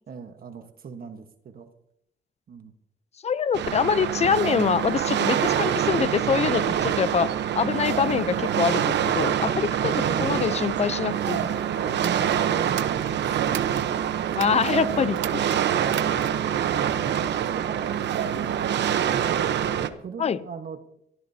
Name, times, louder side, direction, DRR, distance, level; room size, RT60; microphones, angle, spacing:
voice 1, 0.1-1.7 2.5-2.7 9.6-10.3 11.3-11.5 11.8-13.7 15.7-16.2 16.6-19.2 19.7-20.8, right 6 dB, 50° right, 1.3 m, -38 dB
voice 2, 3.2-9.7 10.2-11.4 14.4-15.5 20.2-20.4, left 6 dB, 35° left, 0.6 m, -24 dB
sound 1, 3.5-19.9, right 9 dB, 70° right, 1.0 m, -25 dB
sound 2, 11.9-13.9 14.3-14.7 15.1-16.5, right 12 dB, 90° right, 0.8 m, -37 dB
23.0 x 14.5 x 2.8 m
cardioid pair, 105°, 19 cm